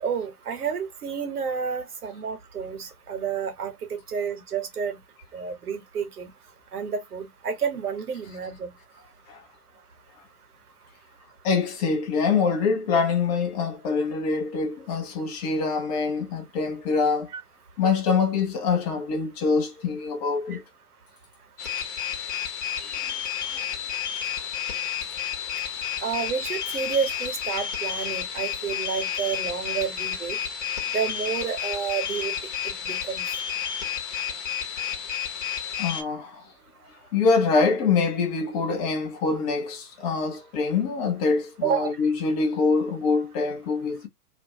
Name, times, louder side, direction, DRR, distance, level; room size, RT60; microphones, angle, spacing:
voice 1, 0.0-5.0 5.3-6.3 6.7-8.7 17.3-17.4 20.5-20.6 26.0-30.4 30.9-32.3 32.6-33.2 41.6-41.9, right 7 dB, 70° right, 1.0 m, -30 dB
voice 2, 11.4-17.3 17.8-20.6 22.8-23.0 23.5-23.6 35.8-36.5 37.1-44.1, left 4 dB, 25° left, 0.6 m, -25 dB
sound 1, 21.6-36.0, left 9 dB, 50° left, 1.0 m, -31 dB
2.4 x 2.2 x 2.6 m
figure-of-eight pair, 115°, 46 cm